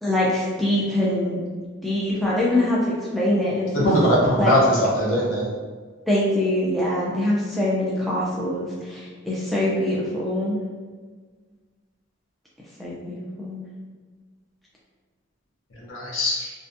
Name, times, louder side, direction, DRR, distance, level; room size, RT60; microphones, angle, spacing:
voice 1, 0.0-1.4 1.8-3.9 4.4-4.6 6.1-10.6 12.8-13.6, left 1 dB, ahead, -7 dB, 0.3 m, -24 dB
voice 2, 3.7-5.5 15.7-16.5, equal, 90° left, -4 dB, 0.8 m, -21 dB
2.5 x 2.2 x 2.5 m, 1.5 s
head